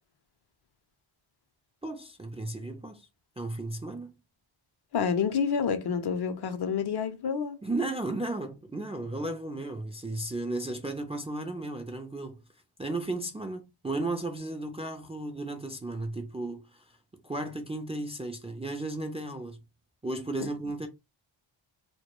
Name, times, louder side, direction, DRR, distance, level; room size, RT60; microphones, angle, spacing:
voice 1, 1.8-3.1 3.4-4.1 7.6-12.4 12.8-17.0 17.2-19.6 20.0-20.9, right 2 dB, 15° right, 0.3 m, -34 dB
voice 2, 4.9-7.6 20.4-20.5, left 6 dB, 55° left, 0.5 m, -28 dB
2.2 x 2.1 x 2.9 m
wide cardioid pair, 100°, 48 cm